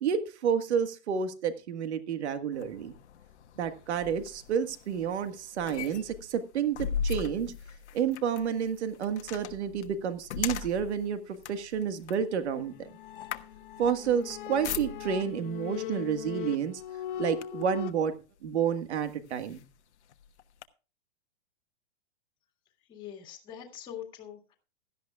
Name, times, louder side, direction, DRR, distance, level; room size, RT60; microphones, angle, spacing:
voice 1, 0.0-2.9 3.6-7.5 7.9-12.7 13.8-16.8 17.2-18.1 18.4-19.6, right 7 dB, 80° right, 9 dB, 1.6 m, -30 dB
sound 1, 2.5-15.3 16.2-16.4 16.8-17.8 18.4-18.5 19.0-20.6, left 7 dB, 85° left, 1.2 m, -40 dB
sound 2, 12.6-17.9, left 12 dB, 50° left, 1.0 m, -39 dB
voice 2, 22.9-24.6, left 10 dB, 15° left, 1 dB, 1.9 m, -43 dB
17.0 x 12.5 x 2.3 m, 0.33 s
supercardioid pair, 175°, 33 cm